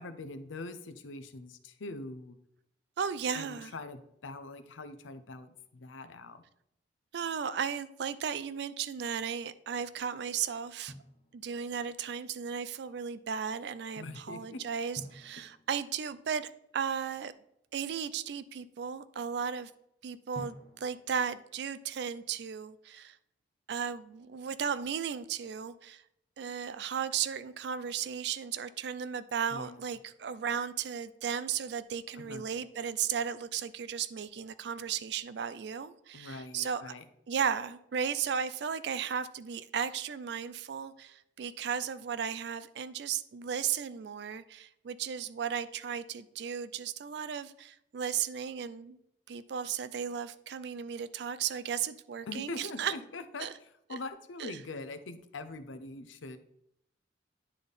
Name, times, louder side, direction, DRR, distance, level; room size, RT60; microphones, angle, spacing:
voice 1, 0.0-2.4 3.3-6.4 14.0-14.6 29.5-29.8 32.2-32.4 36.1-37.0 52.3-53.5 53.9-56.4, left 3 dB, 85° left, 11 dB, 0.6 m, -43 dB
voice 2, 3.0-3.7 7.1-10.9 11.3-16.5 16.7-17.3 17.7-19.7 20.0-20.5 20.8-23.2 23.7-26.0 26.4-36.9 37.3-49.0 49.3-52.9 53.4-53.5 53.9-54.0 54.4-54.6, right 7 dB, 60° right, 14 dB, 0.3 m, -35 dB
Drum, 10.9-12.0 14.9-16.8 20.3-22.3, left 1 dB, 35° left, 0.9 m, -51 dB
9.8 x 4.1 x 3.4 m, 0.76 s
head